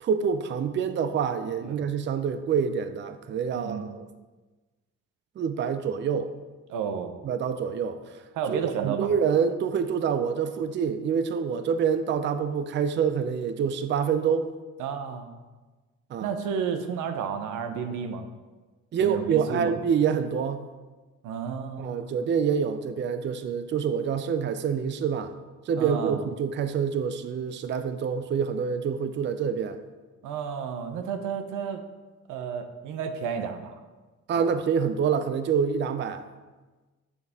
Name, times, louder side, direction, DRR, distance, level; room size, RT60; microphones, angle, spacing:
voice 1, 0.0-4.0 5.4-6.3 7.2-8.0 8.5-14.5 16.1-16.3 18.9-20.6 21.8-25.3 25.7-29.8 34.3-36.2, right 7 dB, 40° right, 9 dB, 0.4 m, -26 dB
voice 2, 3.5-3.9 6.7-7.2 8.3-9.1 14.8-15.4 16.2-18.3 19.0-19.7 21.2-22.2 25.8-26.3 30.2-31.8 32.3-33.8 34.4-34.5, right 7 dB, 90° right, 6 dB, 0.7 m, -32 dB
7.0 x 4.0 x 3.5 m, 1.2 s
cardioid pair, 90°, 30 cm